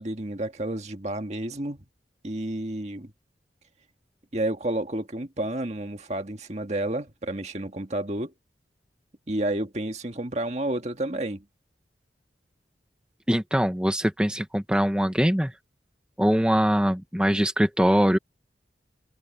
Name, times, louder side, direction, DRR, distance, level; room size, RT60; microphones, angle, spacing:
voice 1, 0.0-1.8 2.2-3.1 4.3-8.3 9.3-11.4, right 1 dB, 40° right, 1.8 m, -30 dB
voice 2, 13.3-15.5 16.2-18.2, equal, 5° right, 1.0 m, -22 dB
head